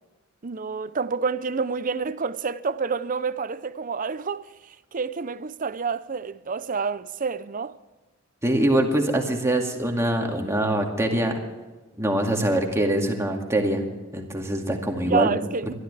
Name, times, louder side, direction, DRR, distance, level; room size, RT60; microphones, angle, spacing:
voice 1, 0.4-7.7 15.0-15.7, right 5 dB, 40° right, 0.6 m, -28 dB
voice 2, 8.4-11.4 12.0-13.8 14.1-15.3, right 1 dB, 15° right, 2.2 m, -23 dB
22.0 x 13.0 x 3.4 m
head